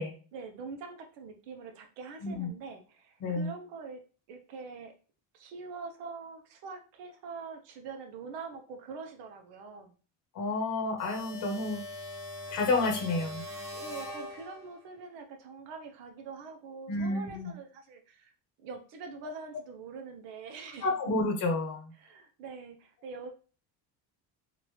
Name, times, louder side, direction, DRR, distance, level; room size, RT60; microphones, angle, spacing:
voice 1, 0.3-4.0 4.3-4.9 5.3-9.9 13.7-18.3 18.6-20.9 22.0-23.3, right 4 dB, 80° right, 5 dB, 0.9 m, -44 dB
voice 2, 10.3-11.8 12.5-13.4 16.9-17.5 20.8-21.9, left 2 dB, 45° left, 3 dB, 0.9 m, -30 dB
sound 1, 11.0-14.9, left 1 dB, 5° right, 0.9 m, -42 dB
2.9 x 2.7 x 3.1 m, 0.37 s
cardioid pair, 160°, 43 cm